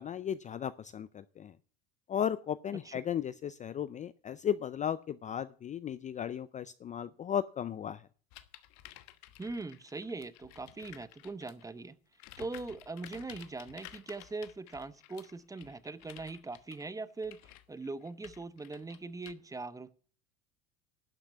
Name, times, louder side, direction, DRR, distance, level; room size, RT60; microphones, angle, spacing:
voice 1, 0.0-1.5 2.1-8.0, left 9 dB, 25° left, 0.4 m, -35 dB
sound 1, 8.3-11.7 12.1-19.3, left 14 dB, 65° left, 1.2 m, -53 dB
voice 2, 9.4-12.0 12.4-19.9, right 3 dB, 10° right, 0.8 m, -41 dB
12.0 x 5.9 x 8.1 m
supercardioid pair, 115°, 30 cm